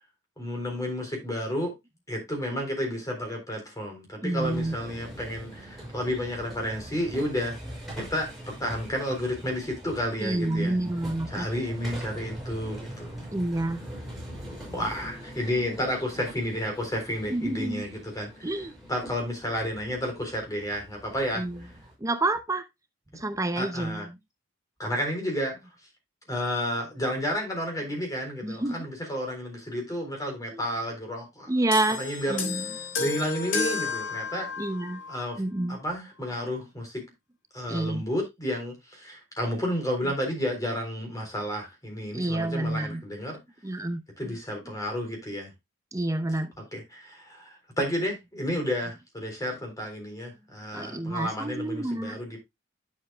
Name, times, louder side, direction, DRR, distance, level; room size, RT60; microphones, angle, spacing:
voice 1, 0.4-1.7 2.1-7.6 8.0-10.8 11.3-13.2 14.7-18.5 18.9-21.4 23.1-23.2 23.6-24.1 24.8-25.6 26.3-31.5 32.0-32.6 33.0-34.5 35.1-35.4 35.7-37.0 37.5-43.4 44.2-45.5 46.7-52.4, equal, 20° left, 3.7 m, -31 dB
voice 2, 4.2-4.7 10.2-11.5 13.3-13.8 17.3-17.8 18.4-18.7 21.4-21.6 22.0-22.6 23.2-24.1 28.4-28.9 30.5-30.6 31.5-32.0 32.3-32.7 34.6-35.0 35.4-35.8 37.7-38.0 42.1-43.0 43.6-44.4 45.9-46.5 50.7-52.2, right 2 dB, 15° right, 0.7 m, -28 dB
sound 1, 4.4-21.9, equal, ahead, 5.5 m, -42 dB
sound 2, 31.7-35.3 36.2-36.4, left 4 dB, 90° left, 2.3 m, -32 dB
9.9 x 7.4 x 2.3 m
head